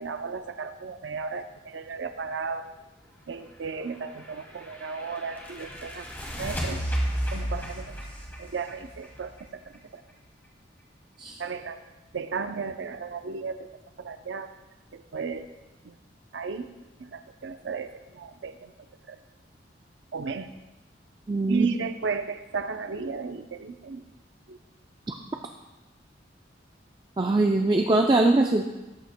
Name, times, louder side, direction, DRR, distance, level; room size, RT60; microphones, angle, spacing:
voice 1, 0.0-2.7 3.3-6.1 6.4-6.8 7.3-7.9 8.4-10.0 11.4-11.8 12.1-13.7 14.0-14.5 14.9-15.5 15.8-15.9 16.3-16.7 17.0-18.7 19.1-19.2 20.1-20.5 21.5-24.0 24.5-24.6, right 5 dB, 70° right, 9 dB, 0.5 m, -34 dB
sound 1, 4.0-9.8, equal, 10° left, 1.5 m, -33 dB
voice 2, 21.3-21.7 25.1-25.2 27.2-28.7, right 2 dB, 25° right, 3 dB, 0.3 m, -22 dB
13.5 x 9.0 x 2.2 m, 1.1 s
head